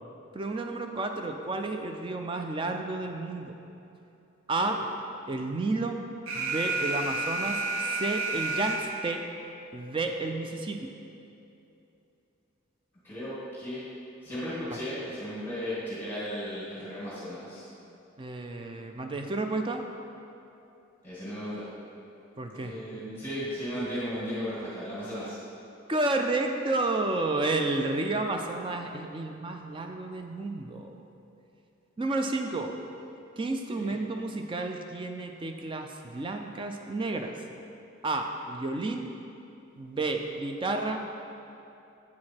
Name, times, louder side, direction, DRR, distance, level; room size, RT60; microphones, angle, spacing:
voice 1, 0.3-3.6 4.5-4.8 5.3-6.0 6.3-9.2 9.7-10.9 14.6-14.8 18.2-19.9 22.4-22.8 25.9-30.9 32.0-32.8 33.4-37.4 38.0-39.1 39.8-41.0, right 2 dB, 25° right, 4 dB, 0.3 m, -31 dB
Alarm, 6.3-9.2, right 2 dB, 80° right, 0.8 m, -31 dB
voice 2, 13.0-13.8 14.2-17.6 21.0-21.6 22.6-25.4 33.7-33.9, equal, 10° left, -10 dB, 1.7 m, -35 dB
8.3 x 4.8 x 4.3 m, 2.8 s
head